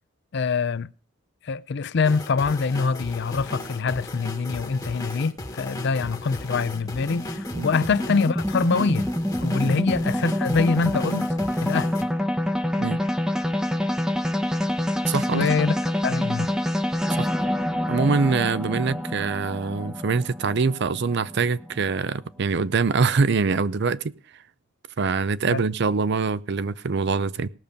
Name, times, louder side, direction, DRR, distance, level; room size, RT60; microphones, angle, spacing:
voice 1, 0.3-0.9 1.4-9.1 9.4-11.3 11.6-11.9 15.3-15.7 16.0-16.5 25.5-25.6, left 4 dB, 55° left, 0.5 m, -24 dB
sound 1, 2.0-12.1, left 1 dB, 20° left, 1.4 m, -36 dB
sound 2, 6.2-22.1, left 1 dB, 5° right, 0.8 m, -27 dB
voice 2, 15.1-15.5 17.2-17.3 17.9-24.1 25.0-27.5, right 4 dB, 55° right, 0.5 m, -24 dB
18.0 x 6.9 x 5.2 m
head